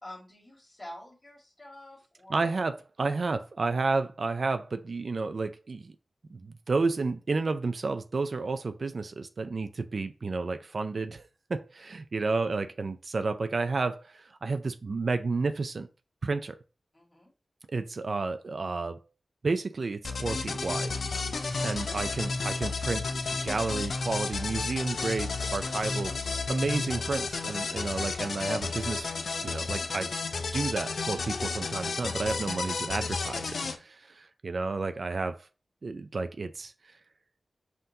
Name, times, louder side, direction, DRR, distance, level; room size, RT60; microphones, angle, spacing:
voice 1, 0.0-2.4 16.9-17.3, left 1 dB, 20° left, 1.8 m, -47 dB
voice 2, 2.3-5.9 6.3-15.9 16.2-16.6 17.7-19.0 19.4-20.9 21.6-26.2 26.5-29.1 29.4-30.1 30.5-35.5 35.8-36.7, right 3 dB, 60° right, 0.3 m, -31 dB
sound 1, 20.0-33.8, left 4 dB, 80° left, 0.5 m, -32 dB
5.6 x 2.6 x 2.7 m
wide cardioid pair, 80°, 0 cm